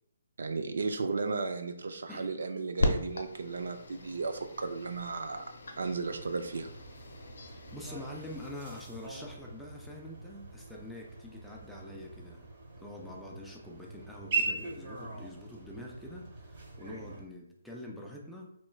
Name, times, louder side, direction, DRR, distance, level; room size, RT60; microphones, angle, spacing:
voice 1, 0.4-5.4 5.8-6.7, right 4 dB, 70° right, 7 dB, 0.4 m, -34 dB
sound 1, 2.8-8.5, left 2 dB, 75° left, 0.6 m, -37 dB
sound 2, 6.1-17.2, right 3 dB, 45° right, 1.1 m, -41 dB
voice 2, 7.7-12.5 12.8-18.5, left 1 dB, ahead, -3 dB, 0.4 m, -45 dB
4.3 x 3.0 x 2.3 m, 0.73 s
hypercardioid pair, 165°, 0 cm